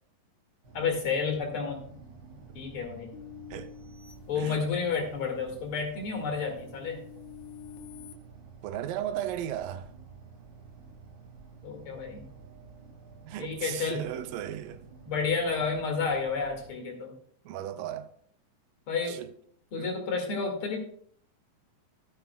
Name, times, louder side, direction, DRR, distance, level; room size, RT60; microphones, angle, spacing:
sound 1, 0.6-16.7, right 5 dB, 45° right, 2.6 m, -51 dB
voice 1, 0.7-1.8 2.5-3.1 4.3-7.0 11.6-12.2 13.4-14.0 15.1-17.1 18.9-19.2 19.7-20.8, left 5 dB, 45° left, 2.5 m, -30 dB
sound 2, 3.1-5.1 5.6-8.1, left 12 dB, 65° left, 1.5 m, -49 dB
voice 2, 8.6-9.9 13.2-14.8 17.5-18.1 19.1-19.3 19.7-20.0, right 11 dB, 85° right, 2.3 m, -35 dB
15.5 x 9.1 x 2.3 m
omnidirectional pair, 3.9 m